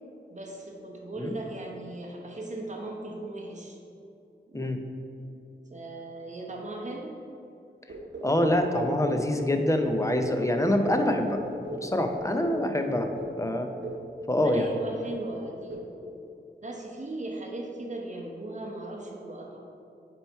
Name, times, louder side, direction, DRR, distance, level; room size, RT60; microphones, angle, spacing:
voice 1, 0.3-3.8 4.5-4.7 5.7-7.2 14.4-15.9 16.6-19.6, right 2 dB, 40° right, -1 dB, 0.9 m, -38 dB
sound 1, 7.9-9.3 9.8-12.7 13.2-13.4 13.8-14.1 14.5-14.8 15.0-15.3 15.7-16.0, equal, 80° right, 0.7 m, -39 dB
voice 2, 8.2-11.4 11.8-13.1 13.4-13.7 14.3-14.7, left 1 dB, 15° left, 5 dB, 0.6 m, -25 dB
8.7 x 3.0 x 4.5 m, 2.7 s
wide cardioid pair, 65°, 19 cm